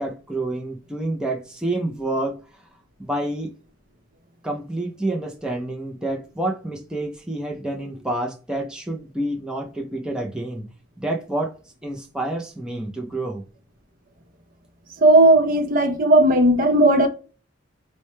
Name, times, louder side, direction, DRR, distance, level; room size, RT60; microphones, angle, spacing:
voice 1, 0.0-2.4 3.0-3.5 4.4-10.7 11.0-11.5 11.8-13.4, right 1 dB, 5° right, 0.5 m, -28 dB
voice 2, 15.0-17.1, right 1 dB, 45° right, 0.7 m, -15 dB
4.4 x 2.1 x 3.0 m
head